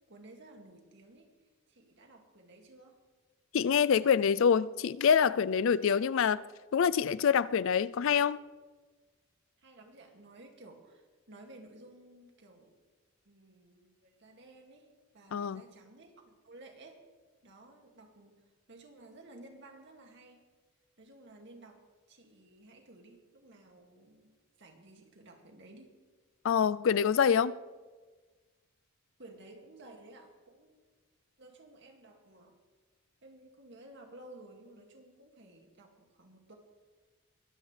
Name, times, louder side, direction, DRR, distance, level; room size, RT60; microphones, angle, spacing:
voice 1, 0.1-1.3 1.7-3.0 9.6-12.8 13.2-17.0 17.4-20.5 21.0-21.8 22.1-25.9 29.2-30.7 31.4-32.6 33.2-36.6, right 2 dB, 55° right, 2.3 m, -55 dB
voice 2, 3.5-6.4 6.7-8.4 15.3-15.6 26.4-27.6, left 7 dB, 65° left, 0.4 m, -26 dB
22.5 x 15.5 x 3.3 m
head